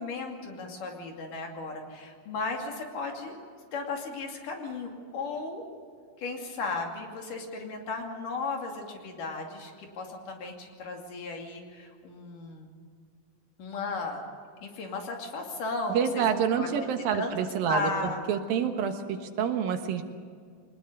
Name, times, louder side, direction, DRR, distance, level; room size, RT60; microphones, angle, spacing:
voice 1, 0.0-3.4 3.7-5.6 6.2-12.7 13.6-14.2 14.6-16.2 16.6-16.7 17.1-17.4 17.7-18.2, left 3 dB, 65° left, 2 dB, 4.1 m, -35 dB
voice 2, 15.9-20.0, right 7 dB, 80° right, 6 dB, 3.2 m, -28 dB
23.5 x 20.5 x 6.8 m, 2.1 s
omnidirectional pair, 4.2 m